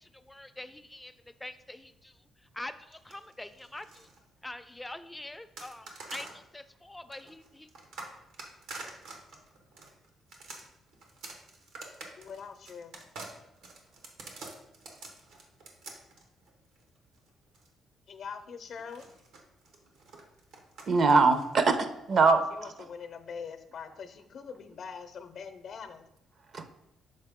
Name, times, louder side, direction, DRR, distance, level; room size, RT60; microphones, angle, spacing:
voice 1, 0.0-4.1 4.4-7.7, left 1 dB, 10° left, 11 dB, 0.4 m, -44 dB
sound 1, 2.9-4.2 5.6-6.4 7.1-17.7 18.8-21.7, right 3 dB, 85° right, 1.1 m, -47 dB
voice 2, 12.2-13.0 18.1-19.1 22.5-26.1, left 6 dB, 60° left, 9 dB, 0.6 m, -43 dB
voice 3, 20.9-22.7 26.5-26.7, right 4 dB, 55° right, 10 dB, 0.6 m, -23 dB
6.6 x 4.1 x 3.6 m, 0.86 s
cardioid pair, 90°, 0 cm